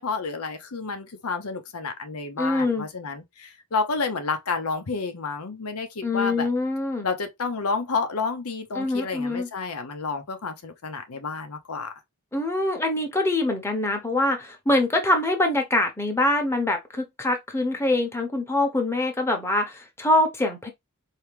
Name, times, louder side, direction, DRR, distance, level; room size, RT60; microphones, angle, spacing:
voice 1, 0.0-6.5 7.0-11.9, left 4 dB, 80° left, 0.8 m, -30 dB
voice 2, 2.4-2.9 6.0-7.1 8.7-9.5 12.3-20.7, left 2 dB, 10° left, 0.9 m, -24 dB
4.6 x 2.8 x 3.3 m
head